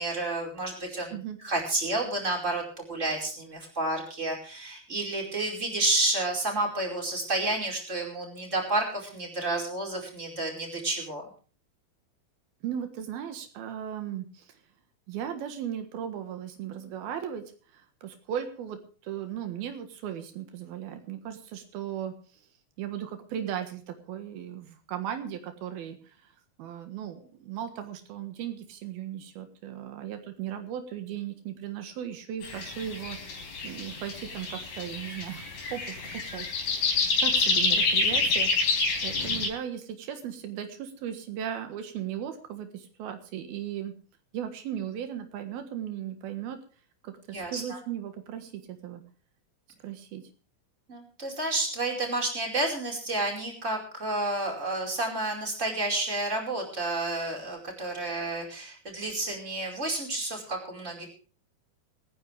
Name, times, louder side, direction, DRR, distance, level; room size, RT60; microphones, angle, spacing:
voice 1, 0.0-1.2 1.4-11.3 47.3-47.8 50.9-61.1, right 2 dB, 20° right, 0 dB, 5.0 m, -30 dB
voice 2, 12.6-14.6 15.1-17.4 17.7-22.2 22.8-26.3 26.6-33.2 33.6-35.5 35.7-36.9 37.2-43.9 44.3-46.6 47.0-49.0 49.8-50.2, right 9 dB, 85° right, 7 dB, 3.4 m, -37 dB
sound 1, 32.4-39.5, left 3 dB, 70° left, 5.7 m, -27 dB
26.0 x 10.0 x 3.5 m, 0.38 s
omnidirectional pair, 4.3 m